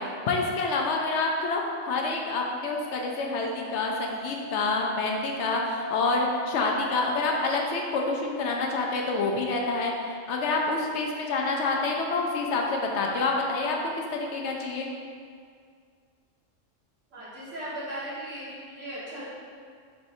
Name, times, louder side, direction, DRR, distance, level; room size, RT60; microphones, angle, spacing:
voice 1, 0.0-1.6 1.9-14.9, left 3 dB, 70° left, 0 dB, 0.8 m, -27 dB
Musical instrument, 2.5-7.3, equal, 20° right, 1.0 m, -40 dB
voice 2, 17.1-19.2, right 1 dB, 80° right, -10 dB, 2.0 m, -37 dB
4.8 x 4.2 x 2.6 m, 2.1 s
omnidirectional pair, 1.3 m